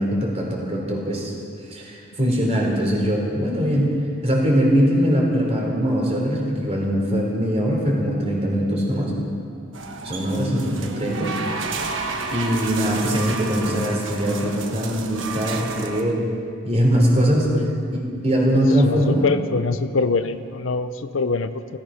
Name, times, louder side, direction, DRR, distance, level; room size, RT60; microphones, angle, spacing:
voice 1, 0.0-1.3 1.7-4.0 4.2-9.1 10.0-11.3 11.7-11.9 12.3-16.2 16.7-17.5 18.2-19.3, equal, 30° right, -2 dB, 3.6 m, -21 dB
sound 1, 9.7-16.0, right 4 dB, 70° right, 1.3 m, -31 dB
voice 2, 18.8-21.8, left 3 dB, 75° left, 11 dB, 0.7 m, -24 dB
17.5 x 15.0 x 5.6 m, 2.4 s
head